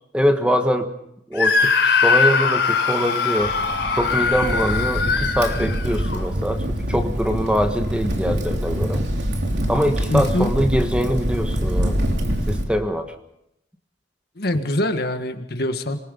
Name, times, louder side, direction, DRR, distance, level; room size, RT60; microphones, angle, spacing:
voice 1, 0.1-0.9 1.3-3.5 3.9-9.0 9.7-12.1 12.5-13.1, equal, 5° right, 6 dB, 1.4 m, -23 dB
Screaming, 1.4-6.2, left 5 dB, 80° left, 3.9 m, -21 dB
Crackle, 3.4-12.6, equal, 70° right, 3.3 m, -25 dB
voice 2, 10.1-10.5 14.4-16.0, left 1 dB, 60° left, 7 dB, 1.7 m, -23 dB
26.0 x 20.5 x 5.4 m, 0.79 s
head